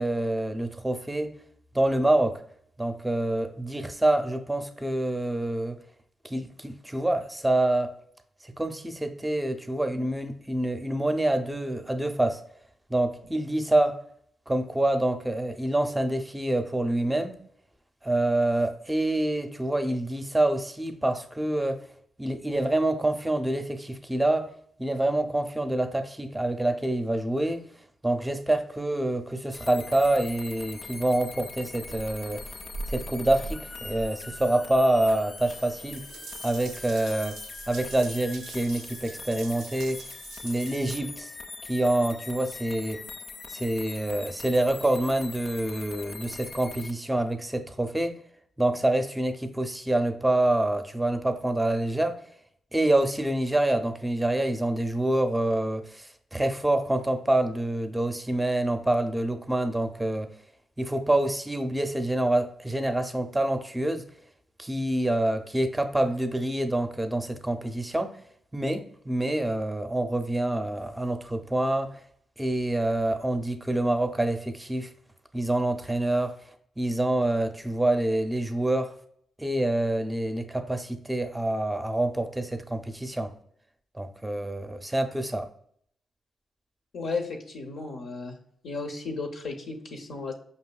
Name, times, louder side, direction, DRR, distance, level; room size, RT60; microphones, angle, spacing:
voice 1, 0.0-1.3 1.7-2.4 2.8-5.8 6.2-7.9 8.4-12.4 12.9-14.0 14.5-17.4 18.0-21.8 22.2-24.5 24.8-27.6 28.0-32.4 32.9-36.0 36.4-37.4 37.7-40.0 40.4-41.3 41.7-43.0 43.5-48.2 48.6-52.2 52.7-60.3 60.8-64.1 64.6-68.2 68.5-71.9 72.4-74.9 75.3-76.4 76.8-78.9 79.4-83.3 83.9-85.5, right 1 dB, 10° right, 0.5 m, -26 dB
sound 1, 29.5-46.9, left 4 dB, 45° left, 0.3 m, -42 dB
Water tap faucet / Bathtub (filling or washing) / Drip, 31.8-41.0, right 3 dB, 85° right, 0.4 m, -42 dB
voice 2, 86.9-88.4 88.6-90.3, left 4 dB, 75° left, 0.6 m, -34 dB
5.4 x 2.6 x 2.3 m
cardioid pair, 70°, 0 cm